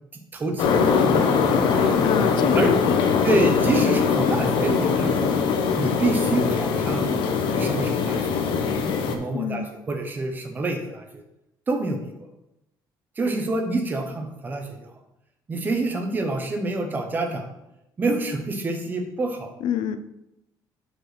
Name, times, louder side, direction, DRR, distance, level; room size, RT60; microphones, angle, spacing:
voice 1, 0.1-1.2 1.7-2.0 2.5-2.7 3.2-5.3 5.8-7.2 7.6-8.3 9.0-11.2 11.7-12.3 13.2-14.9 15.5-17.5 18.0-19.5, right 2 dB, 25° right, 4 dB, 0.9 m, -27 dB
sound 1, 0.6-9.2, left 6 dB, 90° left, 0.9 m, -22 dB
voice 2, 2.0-3.5 9.3-9.7 19.6-20.0, left 8 dB, 70° left, 10 dB, 0.5 m, -26 dB
5.5 x 4.8 x 5.9 m, 0.86 s
cardioid pair, 165°, 8 cm